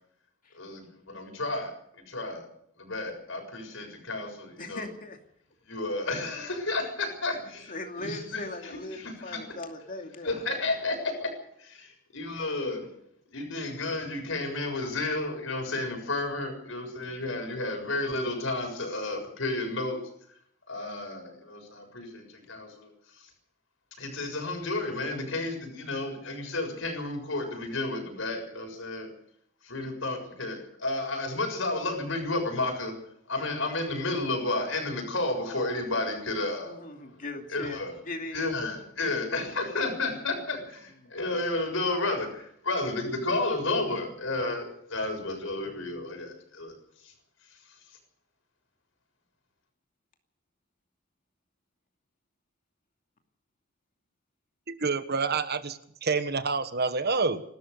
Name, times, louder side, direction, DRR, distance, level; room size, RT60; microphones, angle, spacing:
voice 1, 0.5-2.5 2.8-4.9 5.6-9.4 10.2-11.3 12.1-12.9 13.3-20.0 20.7-23.3 24.0-29.1 29.6-33.0 33.3-37.2 37.5-37.9 38.3-47.1 47.5-48.0, left 2 dB, 70° left, 5 dB, 6.8 m, -32 dB
voice 2, 4.6-5.2 7.7-10.5 36.7-37.8 38.1-38.4 39.0-39.2 41.0-41.2, left 2 dB, 45° left, 3 dB, 2.5 m, -39 dB
voice 3, 54.7-57.4, right 4 dB, 55° right, 11 dB, 1.4 m, -28 dB
29.5 x 13.0 x 6.8 m, 0.70 s
head